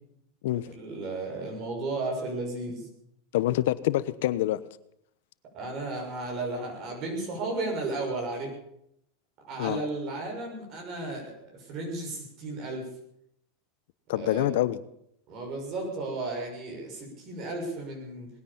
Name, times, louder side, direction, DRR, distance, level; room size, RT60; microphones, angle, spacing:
voice 1, 0.8-2.9 5.5-8.5 9.4-12.9 14.1-14.4 15.3-18.3, right 2 dB, 45° right, 1 dB, 6.4 m, -34 dB
voice 2, 3.3-4.6 9.6-9.8 14.1-14.8, left 14 dB, 75° left, 16 dB, 1.0 m, -26 dB
20.0 x 9.8 x 7.2 m, 0.74 s
supercardioid pair, 125°, 0 cm